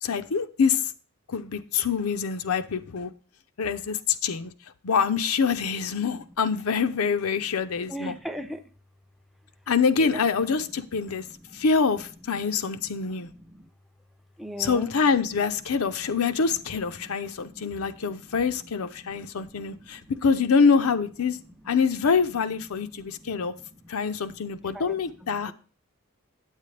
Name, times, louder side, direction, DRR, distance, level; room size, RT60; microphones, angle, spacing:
voice 1, 0.0-0.8 1.3-3.1 3.6-4.5 4.8-8.1 9.7-11.2 11.5-13.3 14.6-21.4 21.7-23.5 23.9-25.5, left 5 dB, 85° left, 10 dB, 0.6 m, -25 dB
voice 2, 7.9-8.6 11.2-11.6 12.6-13.7 14.4-14.9 17.0-18.4 19.0-20.1 21.4-21.5 22.8-23.8 24.2-25.5, right 1 dB, ahead, 9 dB, 0.4 m, -42 dB
8.3 x 8.2 x 3.3 m, 0.38 s
head